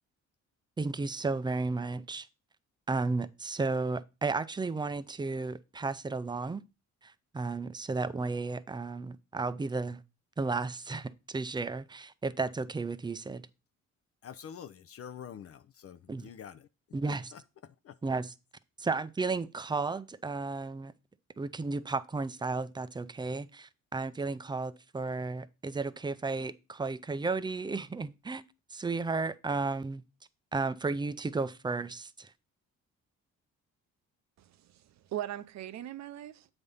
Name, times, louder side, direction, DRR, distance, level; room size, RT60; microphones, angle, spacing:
voice 1, 0.8-2.3 2.9-6.6 7.0-10.0 10.4-13.5 16.1-16.3 16.9-17.3 18.0-18.3 18.8-20.9 21.4-28.4 28.7-30.0 30.5-32.3, right 3 dB, 15° right, 0.4 m, -33 dB
voice 2, 14.2-16.7 17.1-18.0, left 8 dB, 50° left, 0.5 m, -47 dB
voice 3, 34.4-36.5, right 12 dB, 65° right, 0.6 m, -40 dB
7.9 x 3.5 x 5.4 m
cardioid pair, 90°, 30 cm